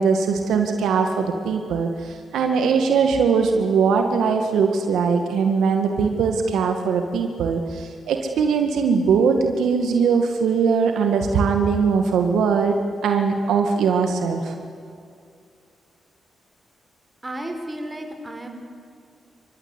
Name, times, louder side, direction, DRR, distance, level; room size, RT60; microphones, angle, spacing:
voice 1, 0.0-12.7 13.0-14.5, right 5 dB, 80° right, 5 dB, 2.0 m, -21 dB
voice 2, 17.2-18.5, right 1 dB, 20° right, 4 dB, 5.0 m, -33 dB
28.0 x 15.0 x 9.9 m, 2.4 s
supercardioid pair, 55°, 0 cm